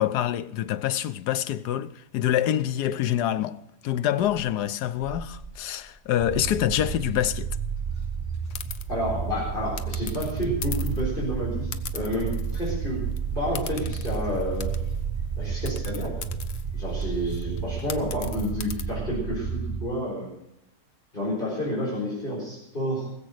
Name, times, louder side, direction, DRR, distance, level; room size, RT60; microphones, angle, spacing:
voice 1, 0.0-3.6 3.8-7.5, left 11 dB, 80° left, 1.2 m, -26 dB
sound 1, 4.2-17.0, right 3 dB, 10° left, 6.8 m, -45 dB
sound 2, 6.2-19.9, right 6 dB, 40° right, 0.9 m, -31 dB
sound 3, 8.5-8.8 9.8-11.1 11.7-12.8 13.1-13.2 13.5-15.0 15.7-18.8, left 7 dB, 50° left, 0.9 m, -40 dB
voice 2, 8.9-13.0 13.3-14.7 15.4-16.1 16.7-20.3 21.1-23.1, equal, 30° left, 4.5 m, -30 dB
20.0 x 7.8 x 6.4 m
omnidirectional pair, 1.7 m